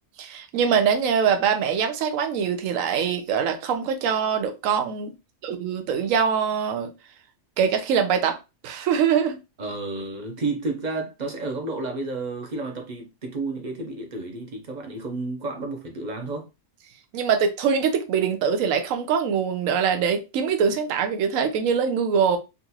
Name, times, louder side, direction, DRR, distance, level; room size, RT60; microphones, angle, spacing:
voice 1, 0.2-5.1 5.4-6.9 7.6-8.4 8.6-9.4 17.1-22.4, right 7 dB, 75° right, 1.0 m, -23 dB
voice 2, 9.6-16.5, right 3 dB, 40° right, 0.7 m, -31 dB
3.8 x 2.4 x 2.7 m
omnidirectional pair, 1.4 m